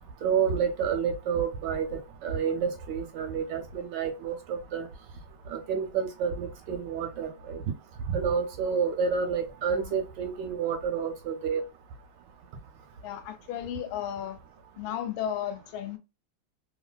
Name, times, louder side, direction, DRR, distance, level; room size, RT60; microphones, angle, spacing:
voice 1, 0.2-1.9 2.2-4.9 5.5-7.6 8.1-11.6, right 6 dB, 75° right, 1.1 m, -29 dB
voice 2, 13.0-14.4 14.8-16.0, left 10 dB, 85° left, 1.4 m, -34 dB
3.0 x 2.5 x 2.2 m
omnidirectional pair, 2.2 m